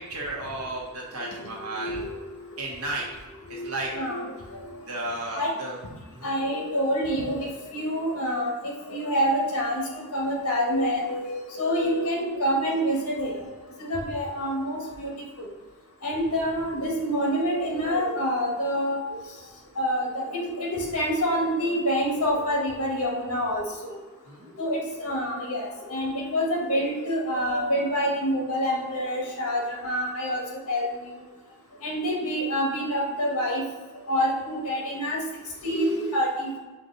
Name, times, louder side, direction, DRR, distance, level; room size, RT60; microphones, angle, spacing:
voice 1, 0.0-2.0 2.6-3.0 3.5-3.9 4.9-5.8 6.1-6.3 24.3-24.6, right 2 dB, 70° right, -3 dB, 1.2 m, -33 dB
voice 2, 1.7-2.2 3.5-4.2 4.5-4.7 5.4-5.5 6.2-8.5 8.9-9.8 10.1-13.3 13.8-15.1 16.0-19.0 19.8-23.6 24.6-30.9 31.8-33.6 34.1-35.2 35.6-36.6, equal, 70° left, -1 dB, 1.3 m, -27 dB
5.4 x 2.5 x 3.9 m, 1.2 s
head